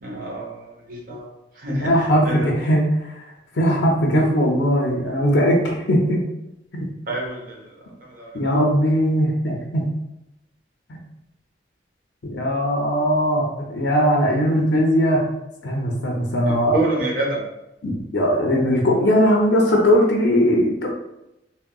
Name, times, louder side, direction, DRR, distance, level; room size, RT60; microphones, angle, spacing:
voice 1, 0.0-1.3 1.6-2.6 7.1-7.7 8.0-8.3 16.5-17.4, right 1 dB, 50° right, -2 dB, 0.7 m, -27 dB
voice 2, 1.8-2.9 3.6-6.3 6.7-6.9 8.3-9.9 12.2-15.3 15.6-16.8 17.8-20.9, equal, 75° left, 0 dB, 0.5 m, -19 dB
3.6 x 2.1 x 2.3 m, 0.91 s
head